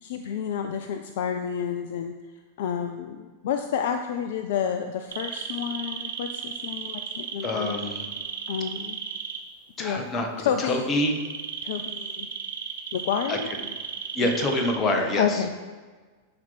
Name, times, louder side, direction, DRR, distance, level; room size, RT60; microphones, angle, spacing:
voice 1, 0.0-2.1 2.6-7.8 8.5-9.0 9.8-10.0 10.4-10.9 11.6-12.3 12.9-13.5 14.2-14.4 15.2-15.5, left 8 dB, 55° left, 7 dB, 0.4 m, -29 dB
sound 1, 5.1-9.4 11.0-14.8, right 7 dB, 60° right, 0.8 m, -34 dB
voice 2, 7.4-8.0 9.8-11.1 13.3-13.4 14.1-15.4, left 1 dB, 25° left, 4 dB, 1.2 m, -26 dB
10.5 x 4.4 x 4.2 m, 1.4 s
figure-of-eight pair, 90°, 0 cm